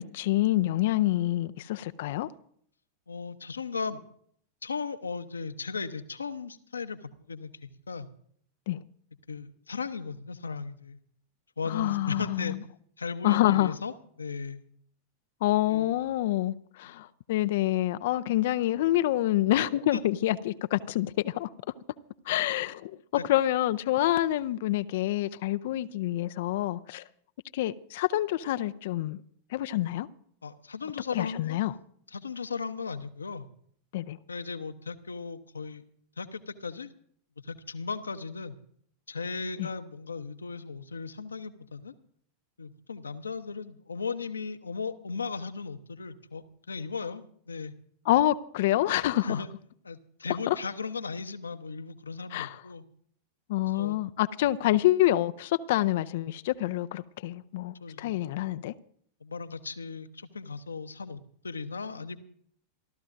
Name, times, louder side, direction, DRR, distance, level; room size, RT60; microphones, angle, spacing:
voice 1, 0.0-2.3 8.7-8.8 11.7-12.6 13.2-13.7 15.4-21.5 22.3-23.0 23.2-27.0 27.5-29.2 29.5-30.1 31.1-31.7 33.9-34.2 39.6-39.7 48.1-49.4 50.5-50.6 52.3-52.6 53.5-58.7, left 14 dB, 55° left, 0.5 m, -27 dB
voice 2, 3.1-4.0 4.6-8.1 9.3-11.0 11.6-12.6 13.0-14.6 15.7-15.9 19.9-20.0 23.2-23.3 30.4-31.6 32.1-33.5 34.3-35.8 36.2-36.9 37.4-38.6 39.1-41.9 42.6-47.7 49.2-49.5 49.8-52.8 53.7-54.0 57.8-58.4 59.2-62.2, left 5 dB, 75° left, 0.9 m, -37 dB
27.5 x 13.0 x 2.6 m
figure-of-eight pair, 90°, 0 cm